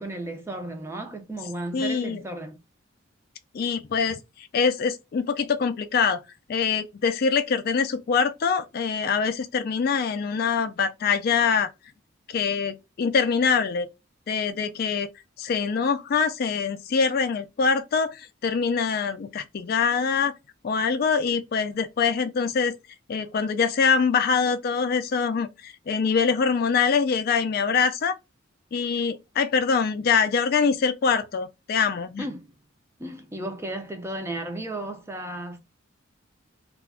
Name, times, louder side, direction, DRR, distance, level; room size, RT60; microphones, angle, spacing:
voice 1, 0.0-2.6 32.2-32.5 33.0-35.6, right 1 dB, 15° right, 0.5 m, -34 dB
voice 2, 1.7-2.2 3.5-4.2 4.5-6.2 6.5-11.7 12.3-13.9 14.3-15.1 15.4-20.3 20.6-22.7 23.1-28.2 28.7-32.2, left 5 dB, 50° left, 0.3 m, -24 dB
2.4 x 2.2 x 3.5 m
head